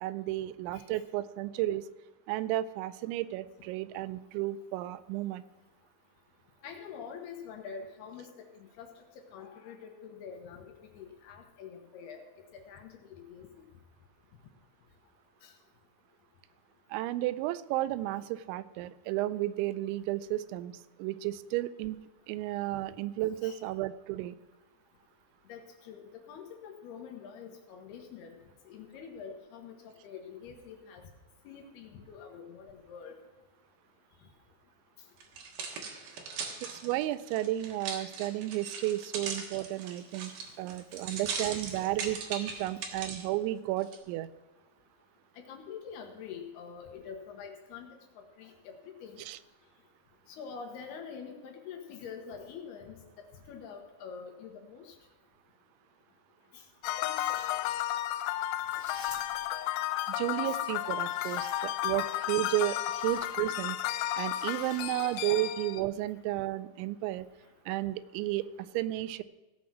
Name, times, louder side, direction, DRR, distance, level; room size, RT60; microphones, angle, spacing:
voice 1, 0.0-1.9 2.3-5.4 16.9-22.0 22.3-24.4 36.6-44.3 49.2-49.4 60.1-63.8 64.2-67.3 67.7-69.2, right 15 dB, 90° right, 15 dB, 2.9 m, -33 dB
voice 2, 6.6-8.3 8.5-12.2 12.5-13.5 15.4-15.5 18.1-18.2 23.4-23.6 25.5-31.0 31.4-33.2 45.4-47.9 48.4-49.2 50.3-55.0 56.5-56.6 57.5-57.6 58.7-58.9 60.5-60.6 64.6-64.9, left 6 dB, 70° left, 3 dB, 2.9 m, -46 dB
sound 1, 35.2-43.2 43.8-44.0, right 5 dB, 60° right, 2.7 m, -39 dB
sound 2, 56.8-65.8, left 13 dB, 90° left, 3.0 m, -33 dB
sound 3, 57.1-57.8 58.7-59.6 60.7-61.9 62.8-63.3 64.3-65.4, left 2 dB, 15° left, 1.8 m, -52 dB
16.5 x 6.1 x 6.0 m, 1.1 s
omnidirectional pair, 5.2 m